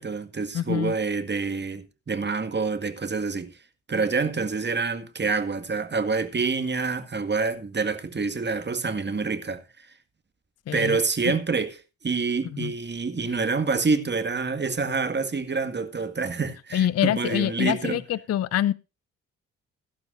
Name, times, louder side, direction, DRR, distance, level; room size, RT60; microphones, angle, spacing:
voice 1, 0.0-3.6 3.9-9.9 10.7-11.8 12.0-18.0, right 4 dB, 30° right, 1.9 m, -27 dB
voice 2, 0.5-0.9 10.7-11.0 11.2-11.3 12.5-12.7 16.7-18.7, left 11 dB, 45° left, 0.6 m, -25 dB
16.0 x 12.0 x 2.6 m
hypercardioid pair, 40°, 36 cm